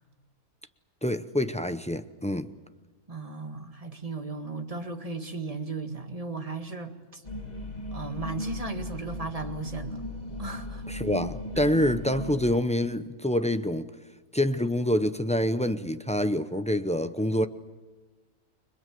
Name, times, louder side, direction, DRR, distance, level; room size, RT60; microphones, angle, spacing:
voice 1, 1.0-2.5 10.9-13.9 14.3-17.5, left 1 dB, 10° left, 0.3 m, -26 dB
voice 2, 3.1-7.2 7.9-10.0 10.4-10.9 11.6-11.7, right 3 dB, 25° right, 1.8 m, -36 dB
sound 1, 7.2-12.4, left 1 dB, 25° left, 2.3 m, -37 dB
30.0 x 22.5 x 7.7 m
omnidirectional pair, 1.6 m